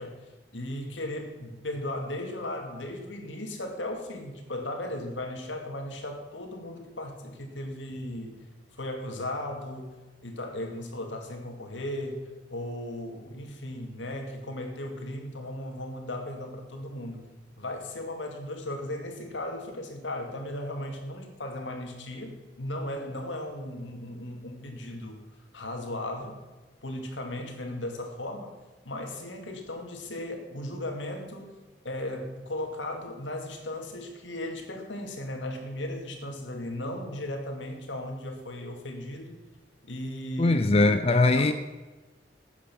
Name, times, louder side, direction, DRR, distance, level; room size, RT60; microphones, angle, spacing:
voice 1, 0.0-8.4 8.7-17.3 17.6-25.3 25.5-26.4 26.8-28.6 28.8-31.5 31.8-39.4 39.8-40.6 41.3-41.5, left 1 dB, 85° left, 3 dB, 2.3 m, -36 dB
voice 2, 40.4-41.5, left 2 dB, 30° left, 9 dB, 0.5 m, -21 dB
12.5 x 8.7 x 6.2 m, 1.2 s
head